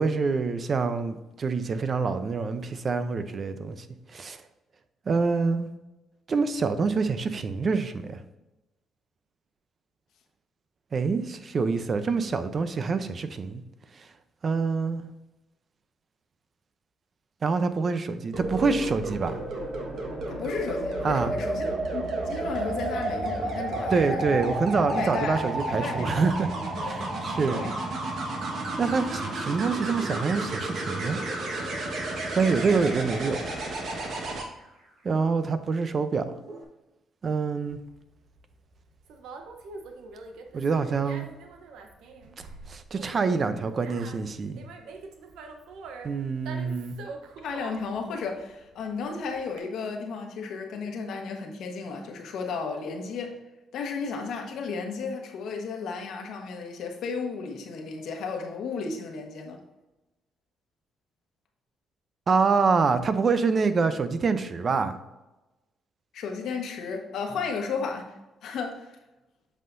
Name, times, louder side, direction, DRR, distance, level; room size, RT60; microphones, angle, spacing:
voice 1, 0.0-3.9 4.1-4.4 5.1-5.7 6.3-8.2 10.9-13.6 14.4-15.0 17.4-19.4 21.0-21.3 23.9-26.5 26.8-27.6 28.8-31.2 32.4-33.5 35.0-36.3 37.2-37.8 40.5-41.3 42.7-44.6 46.0-47.0 62.3-65.0, right 4 dB, 45° right, 11 dB, 0.6 m, -26 dB
sound 1, 18.3-34.4 36.4-36.6, right 2 dB, 65° right, 1.4 m, -31 dB
voice 2, 20.3-24.2 24.9-25.4 25.7-27.1 27.5-27.8 47.4-53.4 53.7-59.6 66.1-68.1 68.4-68.9, left 5 dB, 75° left, 2 dB, 1.2 m, -34 dB
Conversation, 37.7-49.6, right 4 dB, 85° right, 0.8 m, -44 dB
8.2 x 5.6 x 2.6 m, 1.0 s
cardioid pair, 90°, 0 cm